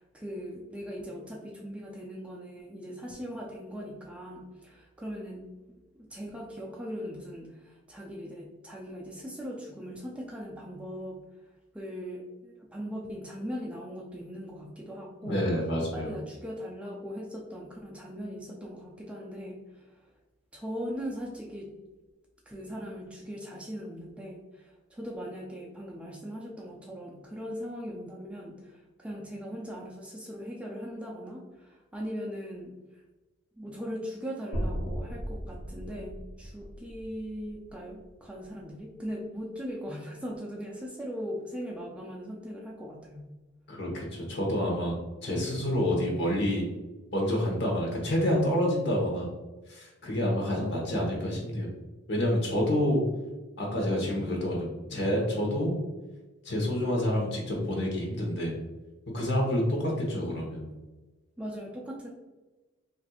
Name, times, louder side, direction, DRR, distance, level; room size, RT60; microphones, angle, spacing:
voice 1, 0.0-11.2 11.7-15.4 15.8-20.0 20.5-21.7 22.5-32.7 33.6-43.3 52.5-53.1 61.4-62.1, equal, 5° right, -2 dB, 0.3 m, -40 dB
voice 2, 15.2-16.1 43.7-45.0 45.2-46.7 47.1-49.3 49.7-51.7 52.1-53.0 53.6-55.8 56.4-58.6 59.1-60.7, equal, 60° left, -1 dB, 1.0 m, -28 dB
sound 1, 34.5-38.7, equal, 85° left, 1.1 m, -37 dB
4.2 x 2.6 x 2.3 m, 1.2 s
head